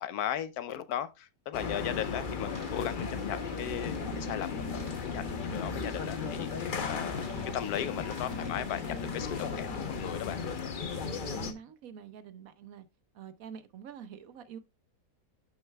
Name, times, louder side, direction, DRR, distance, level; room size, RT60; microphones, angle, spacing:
voice 1, 0.0-7.3 7.5-10.4, left 10 dB, 85° left, 1.2 m, -37 dB
sound 1, 1.5-11.5, left 5 dB, 40° left, 0.9 m, -36 dB
sound 2, 2.4-9.6, right 2 dB, 25° right, 2.2 m, -56 dB
sound 3, 4.4-10.0, equal, 10° left, 2.5 m, -47 dB
voice 2, 10.9-12.9 13.1-14.6, right 7 dB, 70° right, 1.2 m, -46 dB
11.0 x 6.4 x 2.2 m
omnidirectional pair, 1.6 m